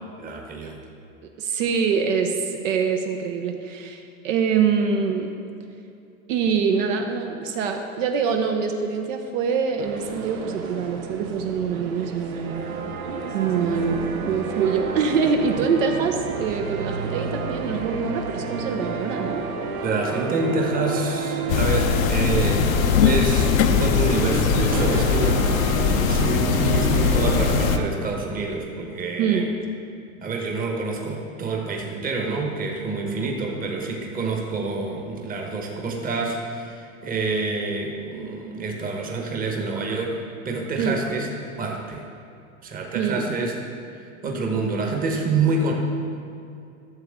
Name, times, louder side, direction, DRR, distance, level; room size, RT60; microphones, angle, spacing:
voice 1, 0.2-0.8 19.8-22.7 23.0-25.5 26.0-29.5 30.2-40.2 40.4-41.3 41.6-42.0 42.6-43.5 44.2-45.7, right 3 dB, 20° right, 1 dB, 1.2 m, -27 dB
voice 2, 1.4-5.3 6.3-12.7 13.3-19.4 29.2-29.5 40.8-41.0 42.9-43.3, right 6 dB, 65° right, 4 dB, 0.9 m, -24 dB
sound 1, 9.8-27.9, right 5 dB, 85° right, 1.0 m, -30 dB
sound 2, 21.5-27.8, left 7 dB, 75° left, 0.7 m, -20 dB
12.5 x 7.0 x 3.6 m, 2.5 s
hypercardioid pair, 125°, 42 cm